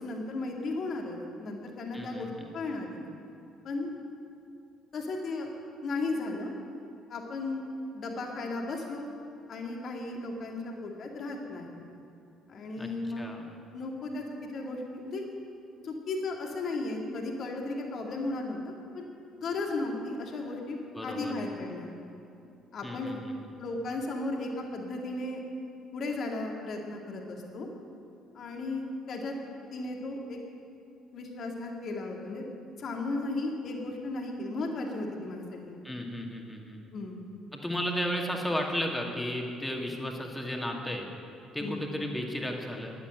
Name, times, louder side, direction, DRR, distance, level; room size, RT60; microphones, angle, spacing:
voice 1, 0.0-3.0 3.6-3.9 4.9-5.5 5.8-6.5 7.1-7.6 7.9-9.1 9.5-11.8 12.5-13.3 13.7-14.2 14.5-15.2 15.8-19.1 19.4-21.9 22.7-23.1 23.6-25.4 25.9-27.7 28.3-29.3 29.7-30.4 31.1-32.4 32.8-35.8 36.9-37.2 41.6-41.9, left 2 dB, 45° left, 1 dB, 2.1 m, -35 dB
voice 2, 1.9-2.3 12.8-12.9 13.2-13.5 20.9-21.3 22.8-23.3 35.8-36.8 37.5-41.1 41.5-42.9, equal, 10° left, 1 dB, 2.3 m, -34 dB
12.0 x 11.0 x 7.9 m, 2.8 s
figure-of-eight pair, 50°, 0 cm